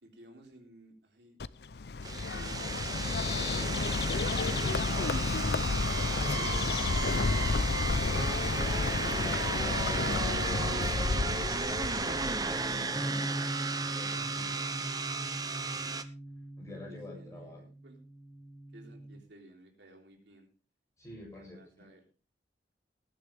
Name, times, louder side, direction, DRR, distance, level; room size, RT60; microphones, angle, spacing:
voice 1, 0.0-1.5 2.1-4.6 16.7-18.0 18.7-20.5 21.3-22.0, right 1 dB, 80° right, 2 dB, 3.6 m, -56 dB
Bird, 1.4-12.8, left 4 dB, 65° left, 0.6 m, -31 dB
sound 1, 2.0-16.0, right 4 dB, 20° right, 0.8 m, -34 dB
voice 2, 2.8-3.4 4.8-5.8 6.1-7.2 9.2-11.4 11.8-13.1 13.9-14.5 16.6-17.6 21.0-21.9, left 2 dB, 15° left, -2 dB, 7.6 m, -47 dB
sound 2, 13.0-19.2, right 1 dB, ahead, 1.3 m, -41 dB
19.5 x 10.5 x 3.6 m, 0.34 s
head